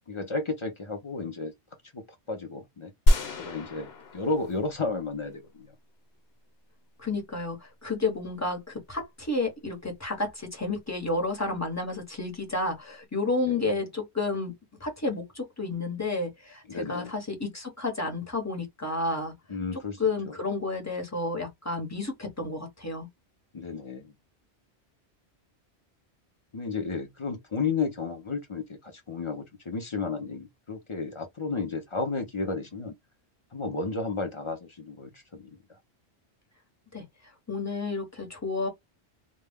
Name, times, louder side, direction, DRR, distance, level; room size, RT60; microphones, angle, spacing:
voice 1, 0.1-1.5 1.9-2.9 3.4-5.7 13.5-13.8 16.7-17.1 19.5-20.0 20.3-20.4 23.5-24.1 26.5-32.9 33.5-35.5, left 4 dB, 35° left, 0.6 m, -33 dB
sound 1, 3.1-5.3, equal, 65° left, 1.0 m, -26 dB
voice 2, 7.0-14.5 14.8-19.3 20.0-23.1 36.9-37.0 37.5-38.7, left 3 dB, 15° left, 0.9 m, -31 dB
2.3 x 2.2 x 3.4 m
omnidirectional pair, 1.2 m